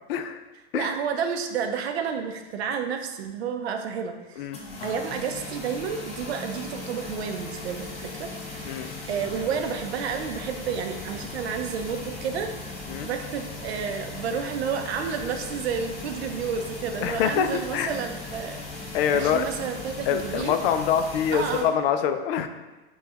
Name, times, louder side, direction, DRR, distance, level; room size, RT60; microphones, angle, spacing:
voice 1, 0.1-0.4 0.7-0.9 4.4-4.6 8.7-8.9 12.9-13.1 17.0-17.9 18.9-19.5 20.1-22.5, left 8 dB, 65° left, 9 dB, 0.4 m, -25 dB
voice 2, 0.7-4.5 4.8-8.8 9.1-12.5 13.0-20.6 21.3-21.7, right 6 dB, 85° right, 6 dB, 0.6 m, -31 dB
sound 1, 4.5-21.6, left 3 dB, 20° left, 0.8 m, -38 dB
5.5 x 2.3 x 2.9 m, 1.2 s
hypercardioid pair, 125°, 31 cm